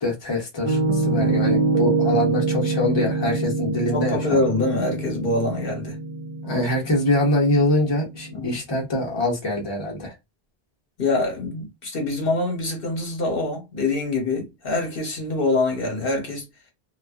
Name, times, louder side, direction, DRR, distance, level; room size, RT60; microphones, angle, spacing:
voice 1, 0.0-4.4 6.4-10.1, left 1 dB, 30° left, 0.7 m, -24 dB
Piano, 0.6-8.5, right 3 dB, 60° right, 0.7 m, -25 dB
voice 2, 3.9-6.0 8.3-8.6 11.0-16.5, left 2 dB, 65° left, 1.1 m, -25 dB
2.3 x 2.3 x 2.3 m
omnidirectional pair, 1.0 m